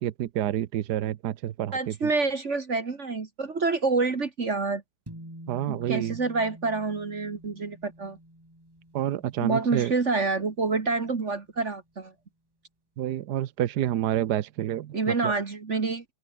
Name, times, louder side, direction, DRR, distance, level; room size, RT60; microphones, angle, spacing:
voice 1, 0.0-1.9 5.5-6.1 8.9-9.9 13.0-14.9 15.2-15.3, right 12 dB, 80° right, 1.4 m, -28 dB
voice 2, 1.7-4.8 5.7-8.2 9.4-12.1 14.9-16.0, right 4 dB, 45° right, 2.1 m, -27 dB
sound 1, 5.1-11.6, right 1 dB, 15° right, 6.3 m, -48 dB
open air
omnidirectional pair, 1.7 m